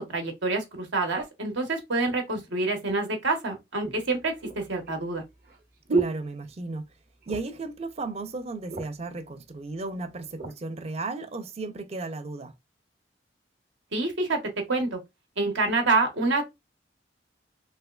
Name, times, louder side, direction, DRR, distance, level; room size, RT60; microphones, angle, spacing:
voice 1, 0.0-5.2 13.9-14.4 14.7-15.0 15.4-16.4, right 3 dB, 80° right, 1.0 m, -27 dB
sound 1, 3.8-6.9 7.2-7.7 8.0-8.1 8.4-9.1 9.8-10.6 11.2-11.4, right 3 dB, 50° right, 0.8 m, -33 dB
voice 2, 5.9-6.9 7.3-12.5, right 3 dB, 35° right, 0.4 m, -35 dB
3.2 x 3.0 x 2.3 m
head